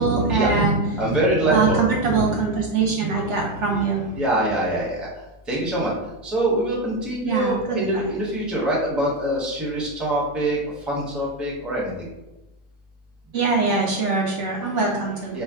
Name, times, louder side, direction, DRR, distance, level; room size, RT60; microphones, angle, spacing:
voice 1, 0.0-0.9 1.1-1.2 1.5-4.0 7.2-7.8 13.3-15.4, right 4 dB, 65° right, -1 dB, 0.9 m, -22 dB
voice 2, 1.0-1.8 3.7-3.8 4.1-5.1 5.5-6.0 6.2-11.9 15.3-15.4, right 1 dB, ahead, -5 dB, 0.7 m, -24 dB
4.4 x 2.2 x 3.5 m, 0.99 s
omnidirectional pair, 1.5 m